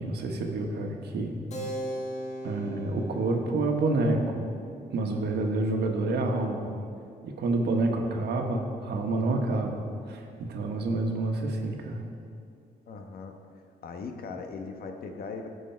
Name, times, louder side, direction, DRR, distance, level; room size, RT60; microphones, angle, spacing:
voice 1, 0.0-1.4 2.4-4.5 4.9-6.7 7.2-12.0, right 2 dB, 80° right, 3 dB, 1.3 m, -28 dB
Keyboard (musical), 1.5-7.6, equal, 45° left, 1.7 m, -41 dB
voice 2, 12.9-13.3 13.8-15.5, left 4 dB, 65° left, 4 dB, 1.1 m, -39 dB
16.5 x 6.2 x 4.5 m, 2.4 s
cardioid pair, 145°, 17 cm